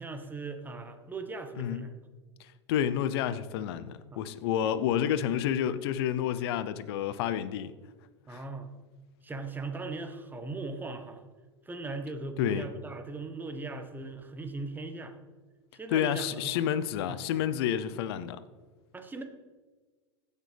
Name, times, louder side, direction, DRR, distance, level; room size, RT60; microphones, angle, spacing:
voice 1, 0.0-1.9 4.1-4.2 4.6-4.7 8.3-8.7 9.2-11.2 11.6-15.1 15.7-16.5 17.1-17.2 18.9-19.2, right 3 dB, 15° right, 1.1 m, -39 dB
voice 2, 2.7-7.7 8.3-8.4 12.4-12.7 15.9-18.4, left 10 dB, 60° left, 0.7 m, -29 dB
16.0 x 6.7 x 3.4 m
hypercardioid pair, 95°, 15 cm